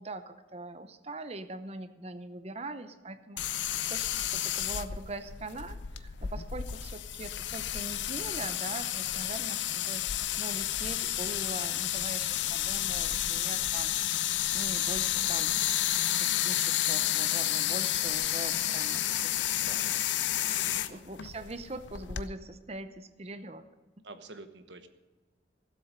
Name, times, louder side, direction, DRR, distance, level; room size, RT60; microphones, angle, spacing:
voice 1, 0.0-10.1 10.4-13.9 14.5-15.6 16.1-19.4 19.9-20.3 20.9-23.7, right 2 dB, 35° right, 11 dB, 0.8 m, -42 dB
sound 1, 3.4-22.3, left 12 dB, 85° left, 0.6 m, -31 dB
voice 2, 19.6-20.0 20.5-21.0 24.0-24.9, right 3 dB, 80° right, 9 dB, 1.1 m, -48 dB
16.0 x 7.8 x 6.6 m, 1.3 s
head